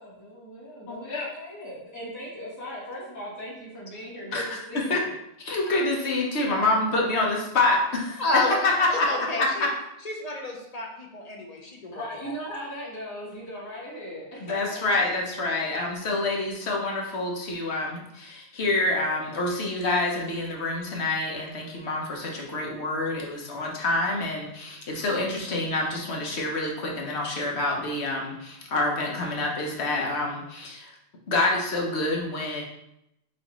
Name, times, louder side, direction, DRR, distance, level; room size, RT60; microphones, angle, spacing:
voice 1, 0.0-5.1 8.3-9.4 11.9-14.8, equal, 15° left, -6 dB, 1.1 m, -38 dB
voice 2, 0.9-1.3 4.3-5.0 5.4-9.7 14.4-30.9 31.3-32.6, left 2 dB, 65° left, -1 dB, 1.1 m, -27 dB
voice 3, 8.2-8.5 8.9-9.6 10.0-12.3, left 3 dB, 45° left, 0 dB, 0.6 m, -30 dB
5.9 x 2.7 x 2.9 m, 0.83 s
omnidirectional pair, 1.2 m